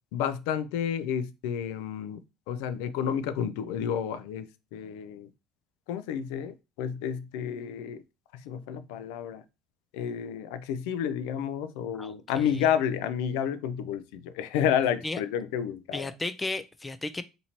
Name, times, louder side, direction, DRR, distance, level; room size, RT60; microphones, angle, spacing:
voice 1, 0.1-2.2 2.5-5.3 5.9-8.0 8.5-9.4 9.9-16.1, left 8 dB, 85° left, 0.3 m, -30 dB
voice 2, 12.0-12.6 15.0-15.2 15.9-17.2, left 2 dB, 15° left, 0.4 m, -34 dB
2.9 x 2.6 x 4.3 m
cardioid pair, 125°, 0 cm